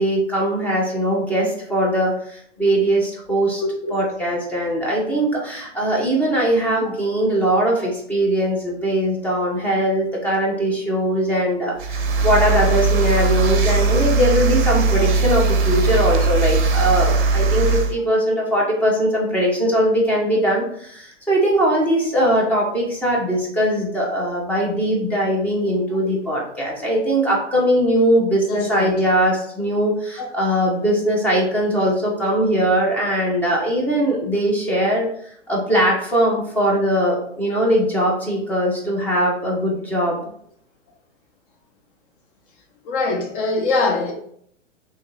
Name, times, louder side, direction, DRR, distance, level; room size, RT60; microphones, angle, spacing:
voice 1, 0.0-3.6 3.9-35.1 35.5-40.2, right 1 dB, 5° left, 0.5 m, -20 dB
voice 2, 3.6-4.0 26.0-26.1 28.5-29.0 30.2-30.3 42.8-44.1, left 3 dB, 45° left, 0.9 m, -23 dB
sound 1, 11.8-17.9, right 4 dB, 45° right, 0.6 m, -19 dB
3.1 x 2.7 x 3.6 m
figure-of-eight pair, 115°, 37 cm